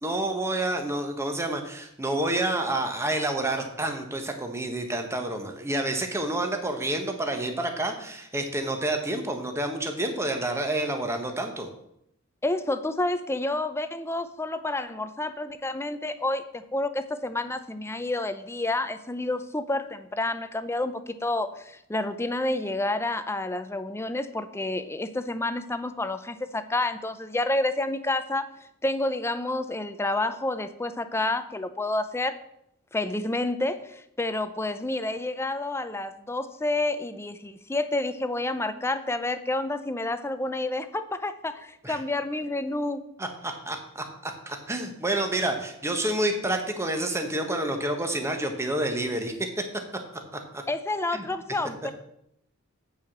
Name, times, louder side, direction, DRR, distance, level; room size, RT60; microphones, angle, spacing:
voice 1, 0.0-11.7 41.8-42.0 43.2-49.3 50.5-50.6 51.1-51.3, right 1 dB, 15° right, 4 dB, 1.2 m, -29 dB
voice 2, 12.4-28.5 28.8-32.4 32.9-43.0 50.7-51.9, left 2 dB, 10° left, 11 dB, 0.5 m, -29 dB
8.7 x 4.9 x 7.3 m, 0.76 s
head